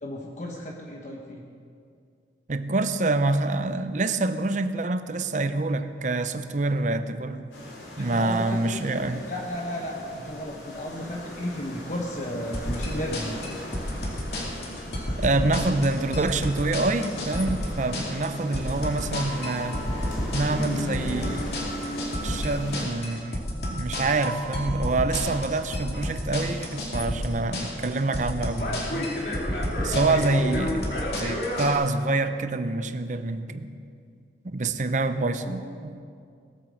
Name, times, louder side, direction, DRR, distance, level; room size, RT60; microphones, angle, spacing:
voice 1, 0.0-1.4 8.0-13.4 29.9-30.2 35.1-35.6, equal, 40° left, -1 dB, 1.2 m, -34 dB
voice 2, 2.5-7.5 8.0-9.3 15.2-21.6 22.2-23.4 23.7-29.1 29.8-30.9 31.2-33.7 34.4-35.9, right 2 dB, 45° right, 10 dB, 0.7 m, -26 dB
sound 1, 7.5-22.9, left 1 dB, 85° left, 3.7 m, -38 dB
sound 2, 12.5-31.7, left 1 dB, 60° left, 2.5 m, -31 dB
19.0 x 9.0 x 6.4 m, 2.3 s
head